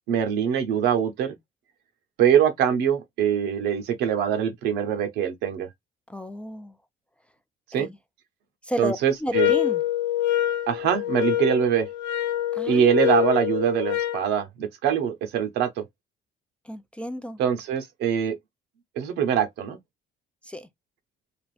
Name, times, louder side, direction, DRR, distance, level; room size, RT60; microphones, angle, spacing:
voice 1, 0.1-1.3 2.2-5.7 7.7-7.9 8.8-9.5 10.7-11.9 12.7-15.8 17.4-18.4 19.0-19.8, right 8 dB, 85° right, 0.8 m, -23 dB
voice 2, 6.1-6.8 7.8-8.0 8.6-9.8 12.5-13.2 16.7-17.4 20.4-20.7, equal, 5° left, 0.3 m, -32 dB
sound 1, 9.3-14.3, left 12 dB, 85° left, 0.5 m, -25 dB
3.3 x 2.5 x 2.4 m
cardioid pair, 110°, 17 cm